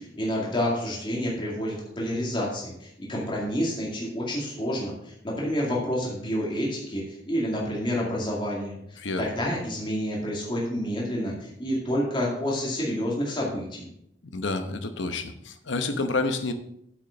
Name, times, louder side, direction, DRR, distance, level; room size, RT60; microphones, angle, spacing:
voice 1, 0.0-13.9, equal, 25° left, -4 dB, 2.2 m, -29 dB
voice 2, 14.3-16.5, left 3 dB, 70° left, 8 dB, 1.0 m, -29 dB
8.2 x 6.3 x 5.7 m, 0.74 s
head